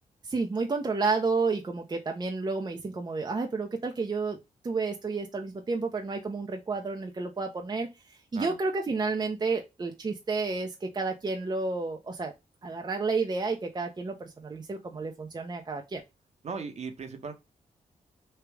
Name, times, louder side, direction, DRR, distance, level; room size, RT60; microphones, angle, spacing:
voice 1, 0.2-4.4 4.6-12.3 12.6-16.0, right 4 dB, 30° right, 0.6 m, -31 dB
voice 2, 16.4-17.3, right 5 dB, 50° right, 0.9 m, -37 dB
3.2 x 2.4 x 3.3 m
cardioid pair, 70°, 14 cm